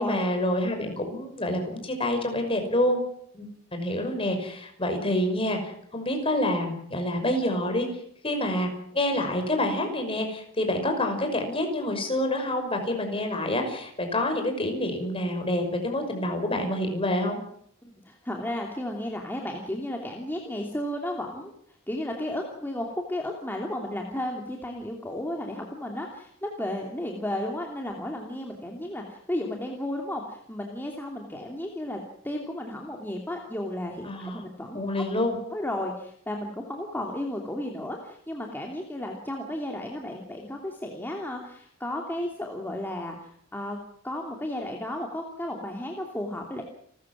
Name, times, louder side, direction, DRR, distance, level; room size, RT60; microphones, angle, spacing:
voice 1, 0.0-3.0 3.3-7.9 8.2-17.4 34.0-34.4 34.7-35.4, left 1 dB, 30° left, 5 dB, 5.8 m, -27 dB
voice 2, 17.8-21.5 21.9-32.0 32.2-35.0 35.5-43.8 44.0-46.6, left 1 dB, 10° left, 0 dB, 2.9 m, -33 dB
30.0 x 14.0 x 7.4 m, 0.68 s
head